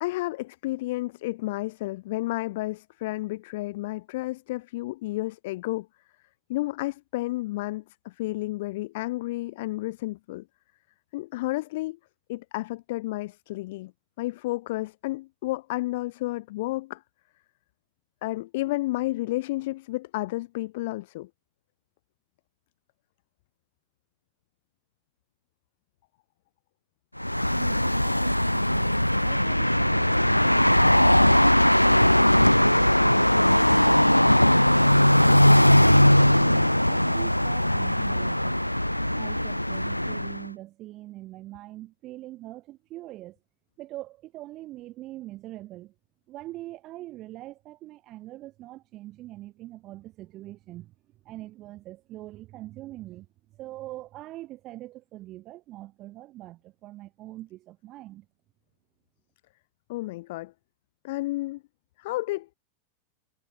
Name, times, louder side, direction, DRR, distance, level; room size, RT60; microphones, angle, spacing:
voice 1, 0.0-5.9 6.5-10.4 11.1-12.0 12.3-13.9 14.2-17.0 18.2-21.3 59.9-60.5 61.0-61.6 62.0-62.5, left 19 dB, 50° left, 0.8 m, -31 dB
sound 1, 27.2-40.5, left 1 dB, 90° left, 0.5 m, -20 dB
voice 2, 39.1-43.4 43.8-45.9 46.3-50.9 51.2-53.3 53.6-58.3, right 16 dB, 35° right, 5.5 m, -43 dB
figure-of-eight pair, 90°, 0 cm